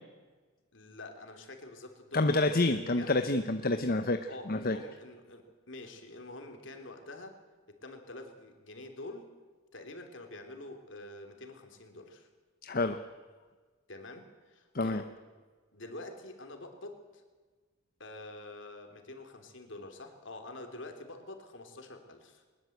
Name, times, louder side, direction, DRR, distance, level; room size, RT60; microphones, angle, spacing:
voice 1, 0.7-3.1 4.3-7.4 7.8-9.3 9.7-12.3 13.9-15.1 15.7-17.2 18.0-22.4, left 2 dB, 65° left, 5 dB, 3.3 m, -47 dB
voice 2, 2.1-4.2 4.5-4.8 12.6-13.0 14.7-15.0, left 2 dB, 45° left, 8 dB, 0.9 m, -28 dB
21.0 x 20.5 x 8.0 m, 1.4 s
head